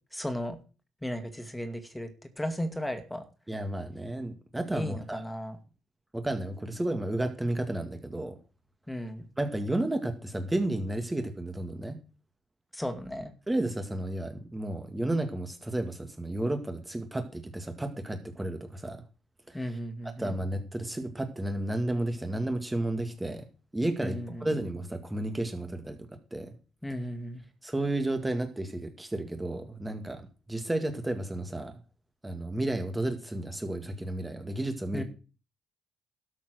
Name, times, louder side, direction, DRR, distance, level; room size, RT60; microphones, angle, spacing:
voice 1, 0.1-0.6 1.0-2.1 2.4-3.2 4.7-5.6 8.9-9.2 12.7-13.3 19.5-20.3 24.0-24.5 26.8-27.4 34.9-35.0, equal, 10° left, 8 dB, 2.4 m, -35 dB
voice 2, 3.5-5.3 6.1-8.4 9.4-12.0 13.5-19.0 19.5-19.8 20.2-23.4 23.7-26.0 26.3-26.5 27.6-30.2 30.5-31.7 32.2-35.0, right 1 dB, 15° right, 7 dB, 2.0 m, -32 dB
12.5 x 7.3 x 6.3 m, 0.35 s
cardioid pair, 90°, 0 cm